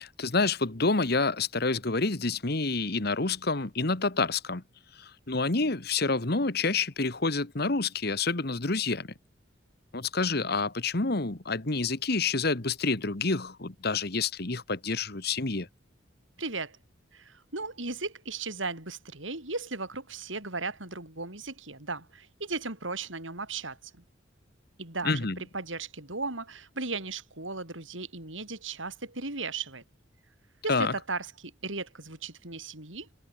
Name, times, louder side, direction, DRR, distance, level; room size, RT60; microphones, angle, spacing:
voice 1, 0.0-4.6 5.0-9.1 9.9-15.7 25.0-25.4 30.7-30.9, left 3 dB, 55° left, 1.6 m, -28 dB
voice 2, 16.4-16.8 17.1-23.9 24.8-29.8 30.6-33.1, right 3 dB, 80° right, 7.5 m, -36 dB
head